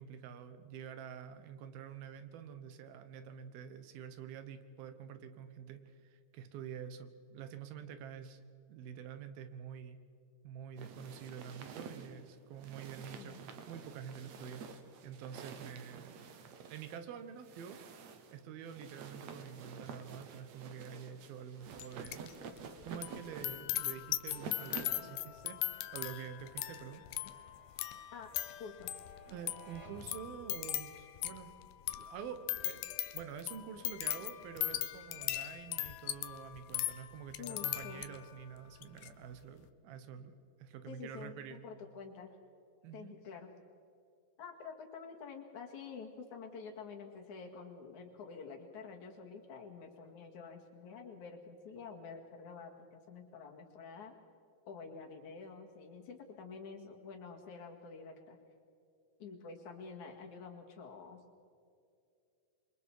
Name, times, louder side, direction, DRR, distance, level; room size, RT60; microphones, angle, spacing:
voice 1, 0.0-8.4 8.7-10.0 10.4-14.6 15.0-16.2 16.7-22.4 22.8-27.0 29.3-31.5 32.0-32.8 33.1-40.3 40.6-41.6 42.8-43.1, right 8 dB, 90° right, 10 dB, 3.1 m, -47 dB
sound 1, 10.8-25.1, right 6 dB, 60° right, 2.2 m, -50 dB
voice 2, 13.1-13.4 28.1-28.3 28.6-28.9 37.4-38.0 40.9-42.4 42.9-43.5 44.4-54.1 54.7-58.4 59.2-61.2, left 5 dB, 60° left, 2 dB, 3.2 m, -48 dB
sound 2, 21.8-22.3 22.6-38.3 38.8-39.1, left 14 dB, 85° left, 2.7 m, -39 dB
sound 3, 24.9-30.8, right 3 dB, 30° right, 5.5 m, -60 dB
28.0 x 23.5 x 4.8 m, 2.5 s
omnidirectional pair, 4.2 m